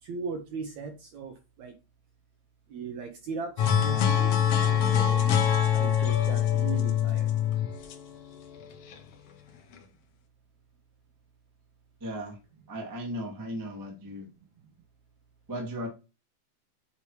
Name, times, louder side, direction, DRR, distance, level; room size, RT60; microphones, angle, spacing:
voice 1, 0.0-1.8 2.7-4.4 4.7-5.5 5.7-7.3, right 5 dB, 70° right, 5 dB, 1.9 m, -38 dB
sound 1, 3.6-8.9, left 9 dB, 80° left, 1.3 m, -24 dB
voice 2, 12.0-12.4 12.7-14.3 15.5-15.9, equal, 10° right, -1 dB, 0.8 m, -36 dB
8.8 x 2.9 x 4.7 m, 0.29 s
omnidirectional pair, 4.2 m